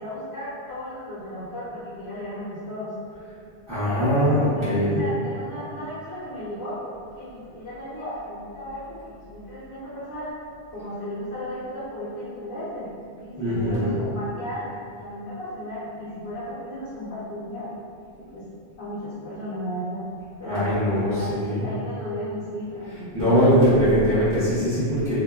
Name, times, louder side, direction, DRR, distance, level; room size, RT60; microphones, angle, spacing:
voice 1, 0.0-2.9 3.8-6.8 7.2-10.3 10.7-12.9 13.2-17.7 18.2-18.5 18.8-20.1 20.4-23.5, equal, 80° left, -12 dB, 1.0 m, -35 dB
voice 2, 3.7-5.0 13.4-13.9 20.4-21.7 23.1-25.2, equal, 15° left, -14 dB, 0.7 m, -21 dB
2.7 x 2.3 x 2.2 m, 2.3 s
omnidirectional pair, 1.1 m